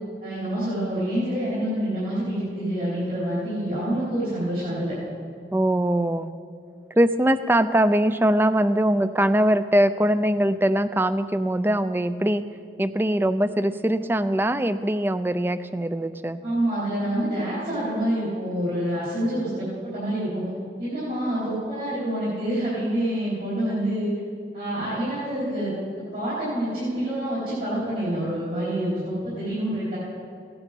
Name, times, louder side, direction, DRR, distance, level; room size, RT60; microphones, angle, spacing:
voice 1, 0.2-4.9 16.4-20.5 20.8-24.1 24.5-25.7 26.1-30.0, right 1 dB, 55° right, -10 dB, 4.3 m, -27 dB
voice 2, 5.5-6.3 7.0-12.4 12.8-16.4, right 1 dB, 10° right, 13 dB, 0.3 m, -22 dB
16.5 x 10.0 x 5.3 m, 2.3 s
head